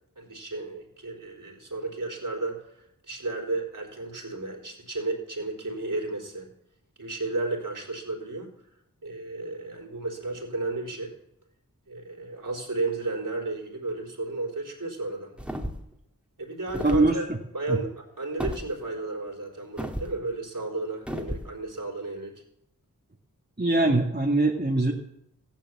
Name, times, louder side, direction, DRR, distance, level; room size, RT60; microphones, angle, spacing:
voice 1, 0.2-2.8 3.1-6.5 7.0-8.5 9.0-11.1 11.9-15.3 16.4-17.2 17.5-22.3, right 3 dB, 65° right, 0 dB, 4.1 m, -33 dB
sound 1, 15.4-15.9 16.7-17.1 18.4-18.6 19.8-20.1 21.1-21.5, equal, 5° right, 2.3 m, -32 dB
voice 2, 16.8-17.4 17.7-17.8 23.6-24.9, right 2 dB, 30° right, 0 dB, 2.0 m, -22 dB
15.0 x 11.0 x 7.6 m, 0.76 s
wide cardioid pair, 40°, 35 cm